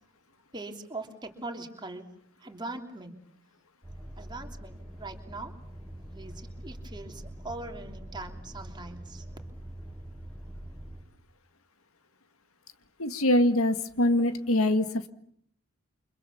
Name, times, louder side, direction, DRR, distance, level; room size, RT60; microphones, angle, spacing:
voice 1, 0.5-2.1 2.4-3.1 4.2-5.5 6.1-9.3, right 2 dB, 20° right, 4 dB, 3.1 m, -41 dB
sound 1, 3.8-11.0, right 1 dB, 5° right, 5.6 m, -44 dB
voice 2, 13.0-14.9, left 1 dB, 75° left, 9 dB, 1.9 m, -23 dB
29.5 x 25.5 x 7.1 m, 0.66 s
head